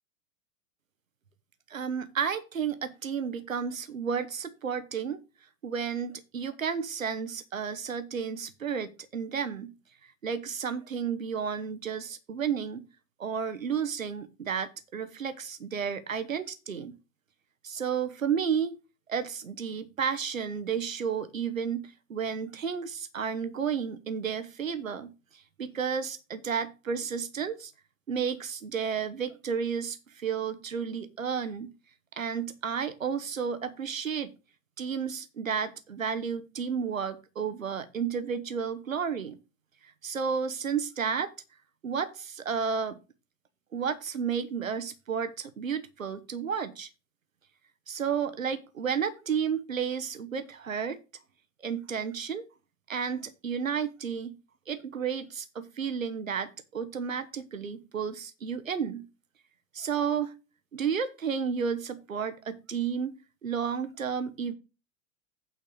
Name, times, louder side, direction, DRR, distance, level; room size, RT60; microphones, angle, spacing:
voice 1, 1.7-5.2 5.6-9.7 10.2-12.9 13.2-17.0 17.6-18.8 19.1-27.7 28.1-31.7 32.1-34.3 34.8-39.4 39.8-41.3 41.8-43.0 43.7-46.9 47.9-51.0 51.6-52.5 52.9-54.4 54.7-59.1 59.7-60.3 60.7-63.1 63.4-64.5, right 7 dB, 85° right, 1.0 m, -32 dB
9.0 x 4.4 x 6.3 m
figure-of-eight pair, 90°, 39 cm